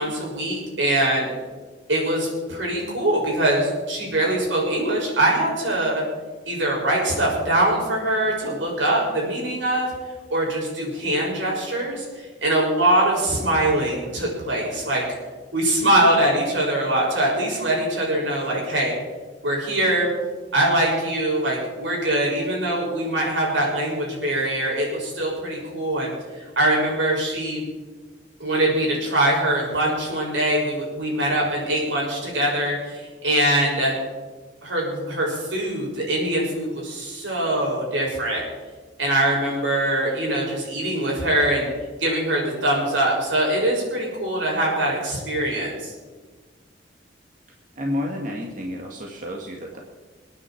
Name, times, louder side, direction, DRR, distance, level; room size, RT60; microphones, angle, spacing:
voice 1, 0.0-1.3 1.9-6.0 6.5-9.9 10.3-15.0 15.5-19.0 19.4-20.1 20.5-27.6 28.4-33.9 34.6-38.4 39.0-41.7 42.0-45.9, right 1 dB, 85° right, -3 dB, 6.8 m, -23 dB
voice 2, 47.8-49.8, left 1 dB, 45° right, 0 dB, 1.8 m, -30 dB
28.5 x 9.7 x 4.6 m, 1.3 s
head